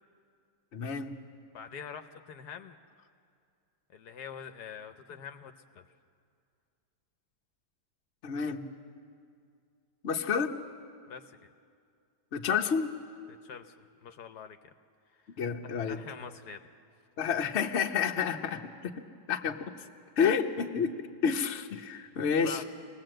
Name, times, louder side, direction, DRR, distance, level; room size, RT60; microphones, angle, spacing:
voice 1, 0.7-1.1 8.2-8.7 10.0-10.5 12.3-12.9 15.3-16.0 17.2-19.7 20.2-22.6, left 6 dB, 45° left, 4 dB, 1.2 m, -30 dB
voice 2, 1.5-2.8 3.9-5.8 11.1-11.5 13.3-13.8 14.0-14.6 15.1-16.6 22.4-22.6, left 7 dB, 75° left, 8 dB, 1.3 m, -45 dB
27.5 x 19.5 x 7.7 m, 2.3 s
omnidirectional pair, 1.8 m